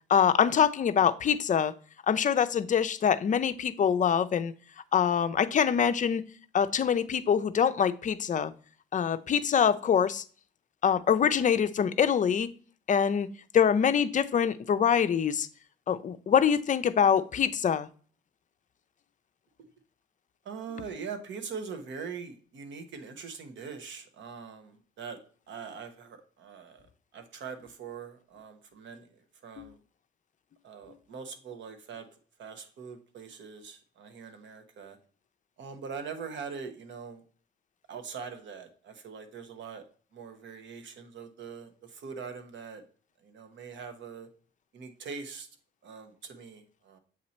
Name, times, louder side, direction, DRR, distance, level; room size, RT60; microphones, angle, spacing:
voice 1, 0.1-1.7 2.1-4.5 4.9-6.2 6.5-8.5 8.9-10.2 10.8-12.5 12.9-13.3 13.5-15.5 15.9-17.9 29.6-29.7, left 8 dB, 40° left, 10 dB, 0.5 m, -24 dB
voice 2, 20.4-25.2 25.5-26.8 27.1-29.1 29.4-29.8 30.6-32.1 32.4-35.0 35.6-37.2 37.9-39.8 40.1-42.8 43.2-44.3 44.7-45.5 45.8-47.0, right 6 dB, 70° right, 8 dB, 1.1 m, -42 dB
7.9 x 2.9 x 4.2 m, 0.41 s
cardioid pair, 90°, 20 cm